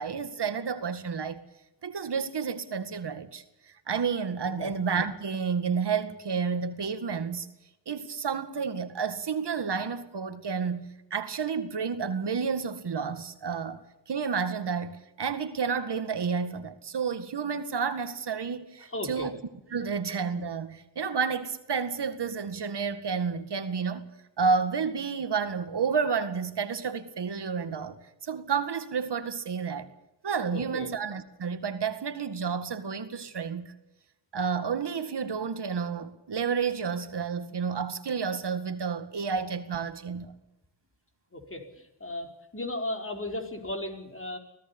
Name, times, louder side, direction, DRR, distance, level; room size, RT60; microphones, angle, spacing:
voice 1, 0.0-1.4 1.8-7.5 7.9-19.4 19.7-24.1 24.4-28.0 28.2-29.9 30.2-33.7 34.3-40.3, right 6 dB, 70° right, 2.0 m, -30 dB
voice 2, 18.9-19.3 30.5-30.9 41.3-41.6 42.0-44.4, left 1 dB, 30° left, 4.8 m, -35 dB
25.5 x 17.0 x 7.1 m
wide cardioid pair, 95°, 42 cm